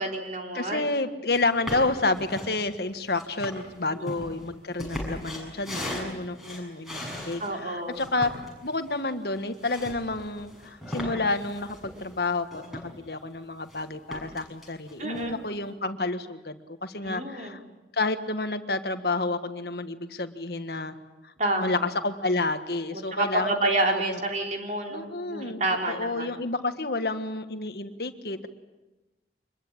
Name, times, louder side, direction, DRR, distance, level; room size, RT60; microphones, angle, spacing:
voice 1, 0.0-0.9 4.0-4.1 7.4-8.0 15.0-15.4 17.0-17.6 21.4-21.8 23.1-26.3, right 2 dB, 45° right, 2 dB, 3.4 m, -29 dB
voice 2, 0.5-8.3 8.6-17.6 17.9-20.9 21.2-24.2 24.9-25.6 25.9-28.5, left 2 dB, 60° left, 9 dB, 1.5 m, -30 dB
sound 1, 1.3-1.4 1.7-2.5 3.1-7.5 7.9-13.1 13.4-13.8 14.1-15.3, left 1 dB, ahead, 6.9 m, -38 dB
25.5 x 21.5 x 8.7 m, 1.1 s
head